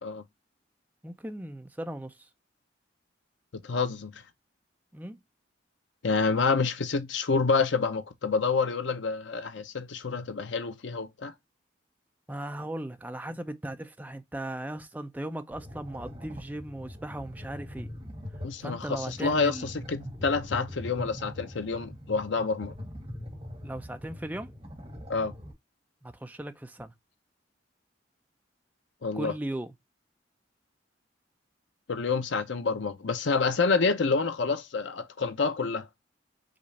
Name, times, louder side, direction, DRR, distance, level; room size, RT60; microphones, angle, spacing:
voice 1, 1.0-2.3 4.9-5.2 12.3-17.9 18.6-19.7 23.6-24.5 26.0-26.9 29.1-29.7, right 1 dB, 10° right, 0.5 m, -37 dB
voice 2, 3.6-4.1 6.0-11.3 18.4-22.7 25.1-25.3 29.0-29.3 31.9-35.9, left 4 dB, 75° left, 0.7 m, -28 dB
sound 1, 15.5-25.5, left 1 dB, 30° right, 1.2 m, -42 dB
5.1 x 2.4 x 4.1 m
head